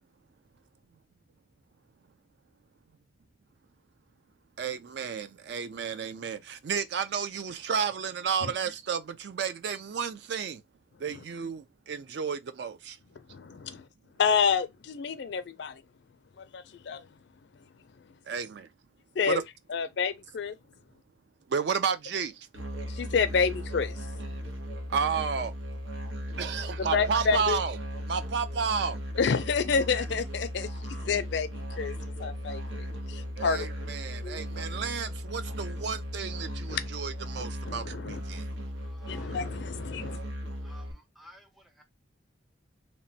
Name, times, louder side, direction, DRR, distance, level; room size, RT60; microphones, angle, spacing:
voice 1, 4.6-10.6 11.0-13.0 18.3-18.7 19.3-19.4 21.5-22.5 24.9-25.5 26.4-27.8 28.1-29.0 33.4-38.5, right 6 dB, 60° right, 0.4 m, -32 dB
voice 2, 13.2-13.9 14.2-15.8 16.4-17.1 17.6-17.7 18.0-18.1 19.2-19.4 19.7-20.6 22.9-24.4 26.8-27.6 29.2-33.9 34.2-34.4 36.7-36.8 37.6-38.2 39.1-40.2, left 5 dB, 60° left, 0.4 m, -29 dB
Musical instrument, 22.5-40.9, equal, 85° right, 0.9 m, -37 dB
voice 3, 38.8-39.4 40.6-41.8, left 1 dB, ahead, 0.5 m, -55 dB
3.0 x 2.1 x 2.6 m
head